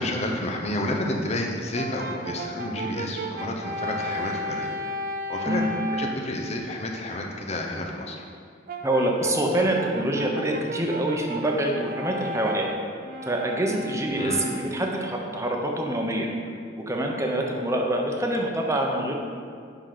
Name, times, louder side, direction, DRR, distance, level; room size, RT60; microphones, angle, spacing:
voice 1, 0.0-4.7 5.3-5.6 5.9-8.2 14.2-14.5, left 1 dB, 35° left, 1 dB, 0.9 m, -30 dB
Brass instrument, 1.7-6.3 8.7-15.0, equal, 50° right, 0.7 m, -34 dB
voice 2, 8.8-12.7 13.2-16.3 16.7-19.1, right 1 dB, 15° right, 1 dB, 0.9 m, -26 dB
9.9 x 4.0 x 5.9 m, 2.1 s
head